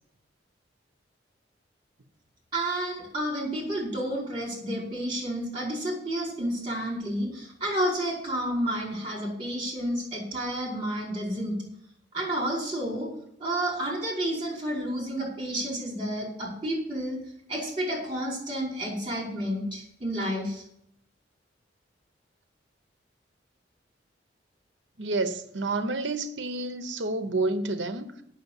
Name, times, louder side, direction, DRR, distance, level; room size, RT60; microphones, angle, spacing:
voice 1, 2.5-11.5 12.1-13.1 13.4-17.2 17.5-20.6, right 1 dB, 25° right, -3 dB, 4.7 m, -30 dB
voice 2, 25.0-28.1, right 2 dB, 75° right, 9 dB, 0.9 m, -29 dB
8.4 x 6.3 x 8.2 m, 0.71 s
head